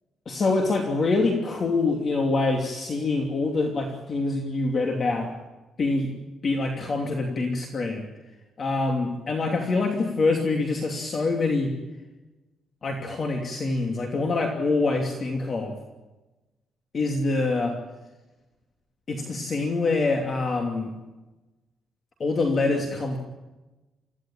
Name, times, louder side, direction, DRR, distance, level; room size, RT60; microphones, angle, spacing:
voice 1, 0.3-5.3 5.8-8.1 8.6-11.7 12.8-15.8 16.9-17.8 19.1-20.9 22.2-23.2, left 3 dB, 40° left, 2 dB, 2.8 m, -25 dB
26.0 x 16.0 x 8.9 m, 1.1 s
cardioid pair, 125°, 0 cm